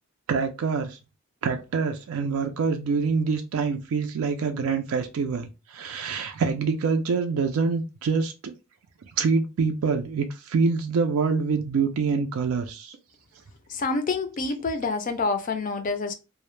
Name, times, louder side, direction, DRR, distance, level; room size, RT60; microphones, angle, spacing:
voice 1, 0.3-1.0 1.4-8.5 9.2-13.0, right 5 dB, 85° right, 0.4 m, -25 dB
voice 2, 13.7-16.1, left 3 dB, 40° left, 0.3 m, -27 dB
2.0 x 2.0 x 3.0 m
head